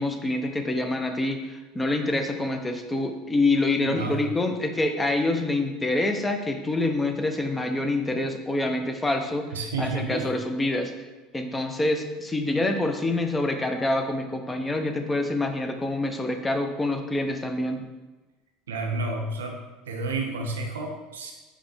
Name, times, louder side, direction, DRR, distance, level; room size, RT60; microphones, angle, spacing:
voice 1, 0.0-9.5 9.8-10.9 11.3-17.8, left 2 dB, 15° left, 5 dB, 0.5 m, -26 dB
voice 2, 3.8-4.2 9.5-10.3 18.7-19.6 19.9-21.3, right 3 dB, 90° right, 2 dB, 0.5 m, -30 dB
4.9 x 2.1 x 3.2 m, 1.2 s
hypercardioid pair, 85°, 0 cm